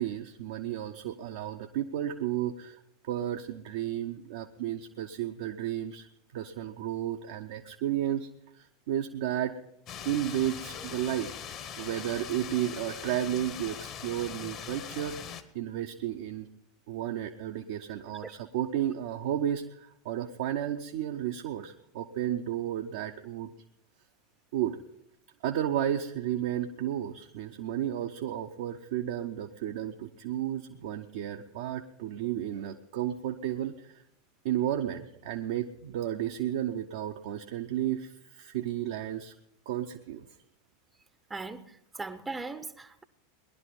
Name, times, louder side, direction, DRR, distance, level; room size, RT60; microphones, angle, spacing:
voice 1, 0.0-2.8 3.1-6.1 6.3-8.3 8.6-9.5 10.0-11.3 11.8-15.2 15.5-16.5 16.9-23.5 24.5-24.8 25.4-34.0 34.4-39.3 39.7-40.3, right 11 dB, 55° right, 0.8 m, -33 dB
sound 1, 9.9-15.4, left 8 dB, 40° left, 1.2 m, -41 dB
voice 2, 41.3-43.0, right 3 dB, 10° right, 0.8 m, -39 dB
19.5 x 11.5 x 5.3 m
figure-of-eight pair, 85°, 0 cm